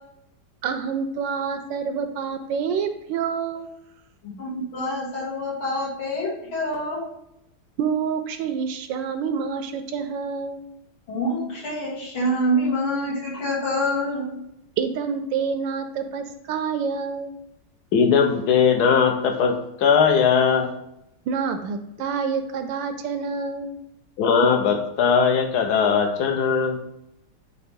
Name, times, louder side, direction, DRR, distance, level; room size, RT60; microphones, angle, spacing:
voice 1, 0.6-3.7 7.8-10.6 14.8-17.3 21.3-23.8, right 6 dB, 75° right, 8 dB, 1.2 m, -27 dB
voice 2, 4.4-7.0 11.1-14.3, equal, 85° left, -7 dB, 3.4 m, -26 dB
voice 3, 17.9-20.7 24.2-26.8, left 6 dB, 60° left, 4 dB, 1.3 m, -19 dB
9.6 x 3.3 x 3.7 m, 0.79 s
omnidirectional pair, 2.2 m